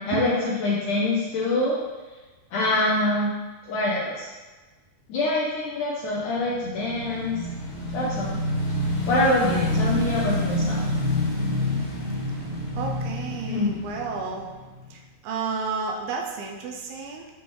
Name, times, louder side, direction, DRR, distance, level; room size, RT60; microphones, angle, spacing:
voice 1, 0.0-1.8 2.5-3.3 3.7-4.3 5.1-7.4 7.9-8.4 9.1-10.8 13.5-13.8, left 2 dB, 75° left, -5 dB, 1.9 m, -25 dB
Motorcycle / Engine, 6.4-14.9, left 1 dB, 40° left, 1.4 m, -28 dB
voice 2, 12.8-14.5 14.9-17.3, right 5 dB, 80° right, 1 dB, 2.4 m, -31 dB
9.9 x 4.4 x 3.2 m, 1.3 s
omnidirectional pair, 4.6 m